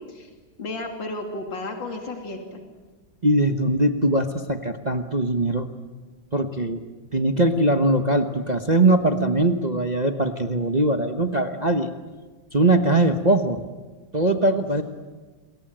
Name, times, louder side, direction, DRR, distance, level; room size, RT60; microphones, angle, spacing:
voice 1, 0.6-2.6, left 2 dB, 70° left, 3 dB, 3.5 m, -33 dB
voice 2, 3.2-5.7 6.3-6.8 7.1-11.9 12.5-13.7 14.1-14.8, right 2 dB, 30° right, 6 dB, 1.0 m, -21 dB
27.5 x 22.5 x 8.9 m, 1.3 s
omnidirectional pair, 2.1 m